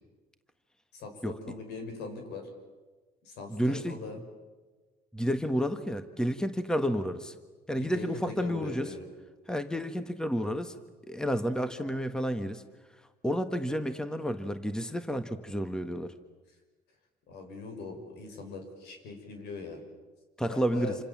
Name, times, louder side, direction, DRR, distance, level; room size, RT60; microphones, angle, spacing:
voice 1, 0.9-2.5 3.2-4.2 7.8-9.1 17.3-19.8 20.5-21.0, left 4 dB, 80° left, 5 dB, 6.8 m, -40 dB
voice 2, 3.5-4.0 5.1-7.3 7.7-8.9 9.5-10.8 11.1-12.6 13.2-16.1 20.4-20.9, equal, 5° left, 9 dB, 1.5 m, -30 dB
28.0 x 27.0 x 7.4 m, 1.3 s
cardioid pair, 110°, 17 cm